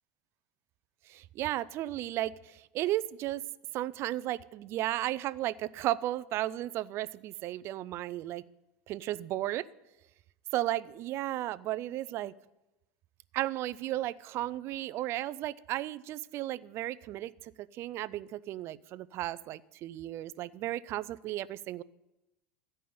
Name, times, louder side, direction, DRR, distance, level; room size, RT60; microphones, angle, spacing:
voice 1, 1.1-3.4 3.7-8.4 8.9-9.7 10.5-12.3 13.3-17.3 17.6-21.8, right 14 dB, 45° right, 18 dB, 0.4 m, -34 dB
13.0 x 5.5 x 9.3 m, 0.94 s
supercardioid pair, 125°, 6 cm